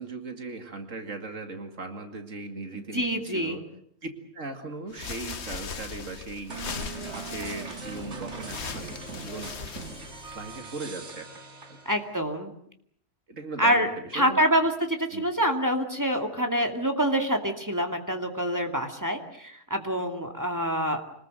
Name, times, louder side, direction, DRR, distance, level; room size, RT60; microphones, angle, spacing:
voice 1, 0.0-3.6 4.0-4.1 4.3-6.6 6.9-9.6 10.3-11.3 11.7-11.8 13.3-14.4 15.1-15.2, right 3 dB, 90° right, 6 dB, 2.7 m, -38 dB
voice 2, 2.7-3.6 11.9-12.5 13.6-13.9 14.1-21.0, equal, 15° right, 4 dB, 2.4 m, -26 dB
sound 1, 4.9-10.6, left 5 dB, 60° left, 1.4 m, -39 dB
sound 2, 6.5-12.2, right 3 dB, 65° right, 2.6 m, -40 dB
26.5 x 20.0 x 7.8 m, 0.66 s
omnidirectional pair, 1.3 m